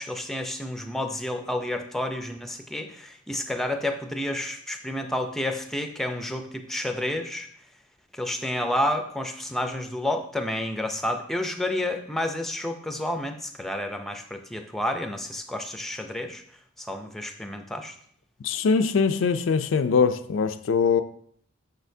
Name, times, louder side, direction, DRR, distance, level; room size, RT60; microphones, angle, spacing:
voice 1, 0.0-7.5 8.1-16.4 16.8-17.9, left 1 dB, ahead, 5 dB, 0.4 m, -30 dB
voice 2, 18.4-21.0, left 5 dB, 65° left, 10 dB, 0.4 m, -22 dB
6.6 x 6.4 x 2.7 m, 0.62 s
head